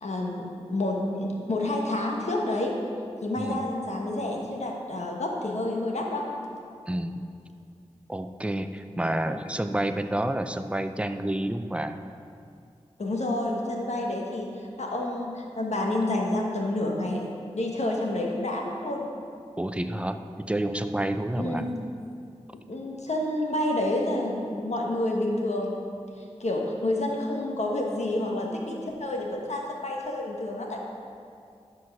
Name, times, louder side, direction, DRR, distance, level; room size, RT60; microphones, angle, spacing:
voice 1, 0.0-2.8 3.2-6.3 13.0-19.1 21.4-21.7 22.7-25.8 26.2-30.8, left 1 dB, 75° left, 0 dB, 1.3 m, -29 dB
voice 2, 6.9-7.2 8.1-12.0 19.6-21.6, right 1 dB, 10° right, 8 dB, 0.5 m, -29 dB
12.0 x 4.7 x 5.9 m, 2.4 s
wide cardioid pair, 60°, 12 cm